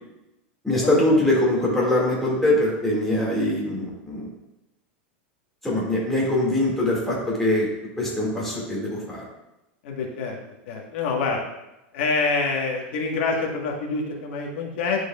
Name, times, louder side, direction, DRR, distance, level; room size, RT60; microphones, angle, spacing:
voice 1, 0.6-4.3 5.6-7.7 8.0-9.2, left 1 dB, 5° left, -5 dB, 1.9 m, -22 dB
voice 2, 9.8-10.4 10.7-11.4 11.9-15.0, left 4 dB, 70° left, 0 dB, 1.3 m, -26 dB
10.5 x 4.8 x 2.3 m, 0.94 s
supercardioid pair, 145°, 6 cm